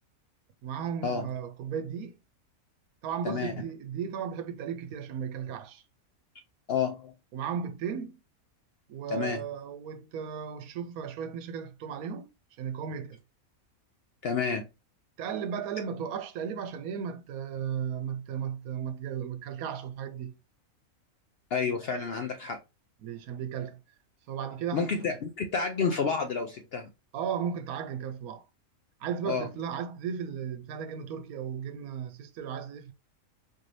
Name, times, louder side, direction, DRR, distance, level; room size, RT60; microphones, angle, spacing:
voice 1, 0.6-2.2 3.0-5.8 7.3-8.2 8.9-12.3 12.6-13.2 15.2-20.4 23.0-23.8 24.3-25.1 27.1-28.5 29.0-32.9, right 7 dB, 80° right, 1.1 m, -35 dB
voice 2, 6.7-7.1 9.1-9.4 14.2-14.6 21.5-22.6 24.7-26.9 29.3-29.5, left 5 dB, 65° left, 0.6 m, -30 dB
4.4 x 2.6 x 3.2 m
omnidirectional pair, 1.5 m